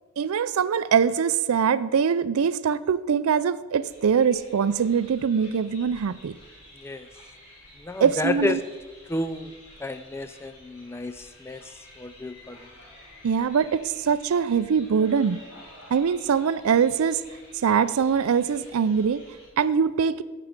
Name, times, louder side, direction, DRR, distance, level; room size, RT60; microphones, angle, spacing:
voice 1, 0.2-6.4 8.0-8.6 13.2-15.4 15.9-17.2 17.6-19.2 19.6-20.2, right 6 dB, 75° right, 16 dB, 0.4 m, -23 dB
sound 1, 3.8-19.5, left 1 dB, 80° left, 3.7 m, -50 dB
voice 2, 7.8-8.6 9.1-9.5 9.8-11.6 12.0-12.6, left 2 dB, 10° left, 10 dB, 0.3 m, -30 dB
10.5 x 7.6 x 5.2 m, 1.3 s
head